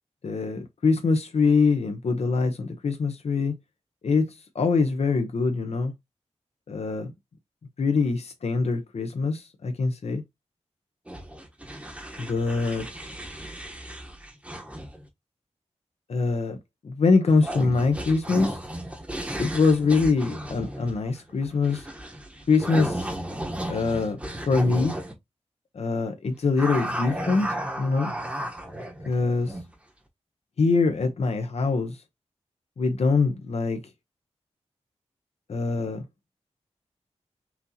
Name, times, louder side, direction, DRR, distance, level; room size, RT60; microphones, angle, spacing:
voice 1, 0.2-3.5 4.0-5.9 6.7-7.1 7.8-10.2 12.2-12.9 16.1-16.6 16.8-18.6 19.4-21.9 22.5-23.1 23.7-24.2 24.5-24.9 25.7-27.5 27.8-28.1 29.1-29.5 30.6-32.0 32.8-33.8 35.5-36.1, left 4 dB, 65° left, 0.8 m, -24 dB
sound 1, 11.1-15.0 17.3-25.1 26.6-29.7, right 1 dB, 10° right, 0.9 m, -34 dB
6.0 x 2.8 x 2.7 m
wide cardioid pair, 135°, 12 cm